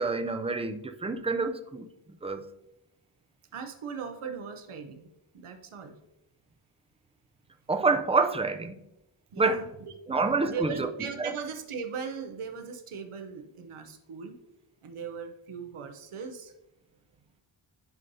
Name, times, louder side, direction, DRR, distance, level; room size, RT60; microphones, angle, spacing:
voice 1, 0.0-1.9 2.2-2.5 7.7-8.8 9.4-9.6 10.1-10.9 11.2-11.3, right 3 dB, 15° right, 0.4 m, -27 dB
voice 2, 3.5-5.1 5.3-5.9 9.3-9.7 10.1-10.2 10.5-14.3 14.8-16.5, right 6 dB, 85° right, 0.8 m, -38 dB
10.5 x 5.4 x 2.7 m
wide cardioid pair, 100°, 49 cm